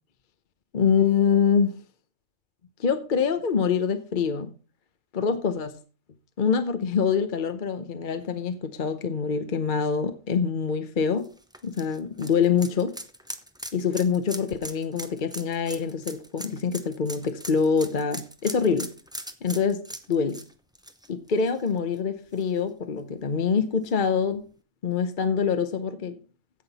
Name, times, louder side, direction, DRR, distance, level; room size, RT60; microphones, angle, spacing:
voice 1, 0.7-1.8 2.8-4.5 5.1-5.7 6.4-11.3 11.6-12.9 13.7-18.9 19.4-20.4 21.1-24.4 24.8-26.2, left 6 dB, 40° left, 0.9 m, -25 dB
sound 1, 11.2-22.0 22.3-22.4 23.9-24.0, right 1 dB, 5° right, 0.5 m, -40 dB
16.0 x 5.9 x 4.2 m
omnidirectional pair, 1.5 m